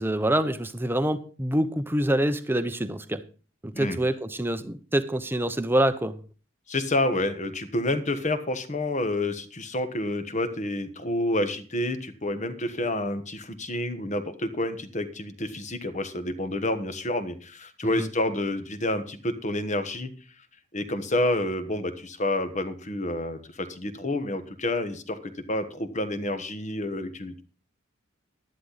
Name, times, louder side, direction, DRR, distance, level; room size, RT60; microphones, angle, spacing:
voice 1, 0.0-3.2 3.6-6.2 17.9-18.1, right 1 dB, 10° right, 10 dB, 0.8 m, -26 dB
voice 2, 6.7-20.1 20.7-27.4, left 1 dB, 35° left, 9 dB, 1.3 m, -29 dB
11.5 x 11.0 x 4.1 m, 0.37 s
head